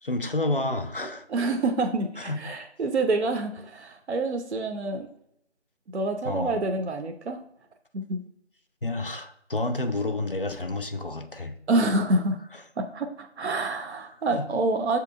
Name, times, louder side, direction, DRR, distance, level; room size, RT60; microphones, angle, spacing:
voice 1, 0.0-1.3 2.2-2.4 6.2-6.6 8.8-11.5 12.5-12.6 14.3-14.4, left 2 dB, 50° left, 6 dB, 0.4 m, -29 dB
voice 2, 1.3-5.1 5.9-7.4 7.9-8.2 11.7-12.4 12.8-15.0, right 2 dB, 70° right, 6 dB, 0.6 m, -27 dB
6.9 x 2.8 x 2.5 m, 0.73 s
figure-of-eight pair, 170°, 35 cm